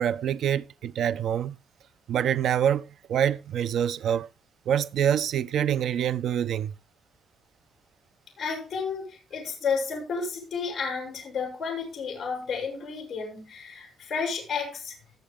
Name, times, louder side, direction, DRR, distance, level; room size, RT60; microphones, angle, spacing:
voice 1, 0.0-1.6 2.1-4.3 4.7-6.7, right 9 dB, 65° right, 0.8 m, -26 dB
voice 2, 8.4-15.0, left 5 dB, 40° left, 7.1 m, -32 dB
20.0 x 7.6 x 3.8 m
cardioid pair, 140°, 0 cm